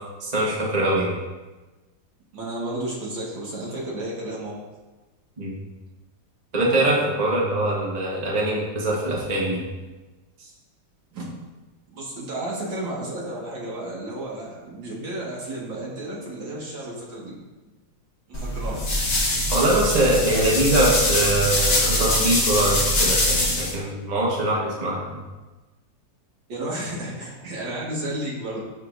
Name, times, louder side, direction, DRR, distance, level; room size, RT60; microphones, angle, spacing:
voice 1, 0.2-1.1 5.4-5.6 6.5-9.6 19.5-25.2, right 1 dB, 25° right, -4 dB, 1.4 m, -23 dB
voice 2, 2.3-4.5 11.1-11.2 11.9-17.4 18.3-18.8 26.5-28.6, right 1 dB, 80° right, -4 dB, 2.6 m, -32 dB
sound 1, 18.3-23.7, left 1 dB, 40° left, 1.7 m, -23 dB
12.0 x 5.5 x 2.7 m, 1.2 s
omnidirectional pair, 2.0 m